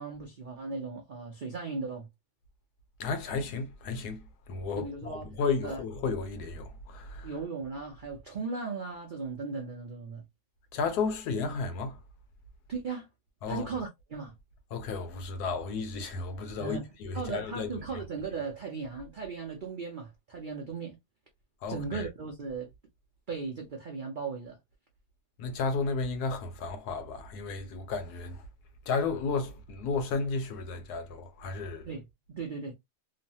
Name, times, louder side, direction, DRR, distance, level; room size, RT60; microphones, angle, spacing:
voice 1, 0.0-2.1 4.8-5.3 5.6-5.8 7.2-10.2 12.7-13.1 13.5-14.3 16.6-16.9 17.1-21.0 21.7-22.7 23.3-24.6 31.9-32.7, right 4 dB, 65° right, 0.4 m, -37 dB
voice 2, 3.0-4.2 4.5-7.3 10.7-12.0 13.4-13.7 14.7-17.9 21.6-22.1 25.4-28.4 28.9-31.9, left 4 dB, 75° left, 1.2 m, -33 dB
3.1 x 2.1 x 2.7 m
omnidirectional pair, 1.7 m